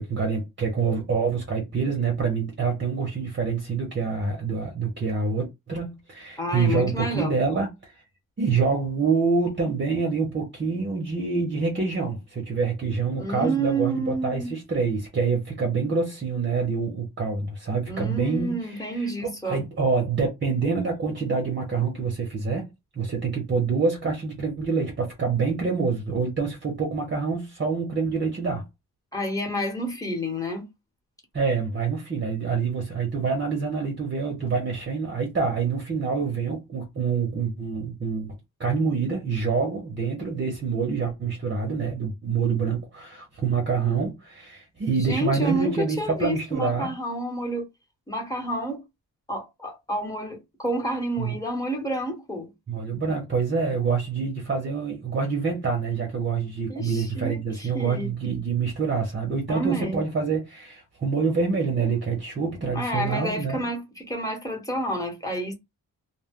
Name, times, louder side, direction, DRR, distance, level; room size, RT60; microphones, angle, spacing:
voice 1, 0.0-7.9 8.4-19.1 19.4-22.7 23.0-28.6 31.3-46.9 51.2-51.4 52.7-63.6, right 5 dB, 30° right, 0.8 m, -26 dB
voice 2, 6.4-7.4 13.1-14.5 17.9-19.6 29.1-30.6 44.9-47.7 48.1-48.8 49.3-52.5 56.7-58.1 59.5-60.0 62.7-65.5, right 1 dB, 10° left, 1.1 m, -29 dB
2.2 x 2.2 x 3.6 m
cardioid pair, 105°, 36 cm